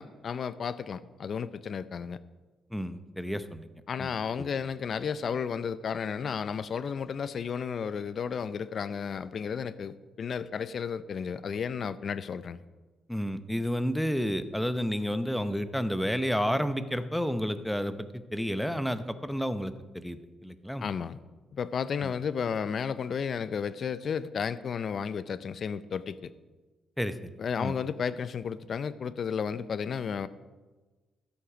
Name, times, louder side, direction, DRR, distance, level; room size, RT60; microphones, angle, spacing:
voice 1, 0.0-2.2 3.9-12.6 20.8-21.2 21.5-26.3 27.4-30.3, left 6 dB, 55° left, 0.5 m, -33 dB
voice 2, 2.7-3.7 4.0-4.5 13.1-20.8 22.0-22.1 27.0-27.3 27.6-27.7, equal, ahead, 0.7 m, -31 dB
13.0 x 8.1 x 5.0 m
cardioid pair, 85°, 0 cm